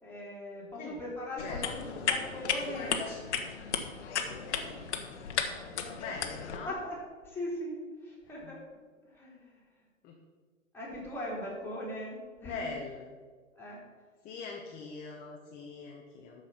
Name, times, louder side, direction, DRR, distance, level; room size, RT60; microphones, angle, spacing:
voice 1, 0.0-3.0 6.6-7.0 7.2-7.8 8.0-8.6 9.1-9.4 10.7-12.7 13.6-13.8, left 1 dB, 5° left, -5 dB, 3.0 m, -39 dB
sound 1, 1.4-6.6, left 7 dB, 55° left, 1.2 m, -35 dB
voice 2, 1.4-2.2 2.7-3.2 4.5-4.8 6.0-6.7 8.4-8.6 10.0-10.2 12.4-13.2 14.2-16.5, left 4 dB, 20° left, 1 dB, 0.9 m, -42 dB
13.0 x 4.9 x 5.7 m, 1.5 s
figure-of-eight pair, 115°, 41 cm